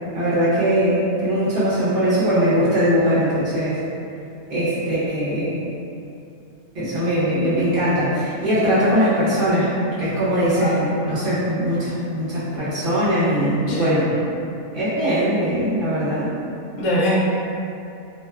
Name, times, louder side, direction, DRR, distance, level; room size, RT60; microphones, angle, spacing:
voice 1, 0.1-3.8 4.5-5.6 6.7-14.2 14.7-16.3, equal, 50° right, -12 dB, 0.8 m, -21 dB
voice 2, 10.6-10.9 13.7-14.0 16.8-17.2, equal, 65° left, -6 dB, 0.8 m, -22 dB
2.7 x 2.2 x 2.2 m, 2.6 s
omnidirectional pair, 1.5 m